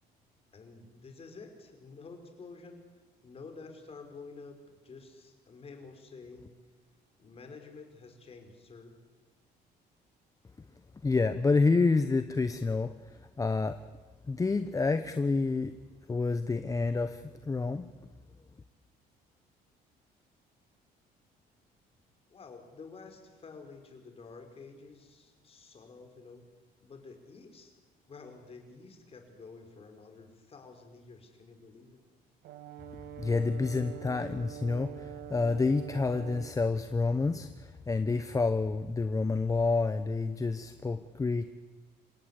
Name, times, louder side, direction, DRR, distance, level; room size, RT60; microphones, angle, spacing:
voice 1, 0.5-2.9 3.2-6.6 7.2-9.0 22.3-26.5 26.8-27.7 28.1-32.0, left 4 dB, 35° left, 5 dB, 4.6 m, -50 dB
voice 2, 11.0-13.8 14.3-15.7 16.1-17.9 33.2-41.5, left 3 dB, 20° left, 10 dB, 0.9 m, -29 dB
Brass instrument, 32.4-36.6, right 10 dB, 80° right, 1.5 m, -45 dB
26.5 x 17.0 x 8.2 m, 1.3 s
cardioid pair, 110°, 17 cm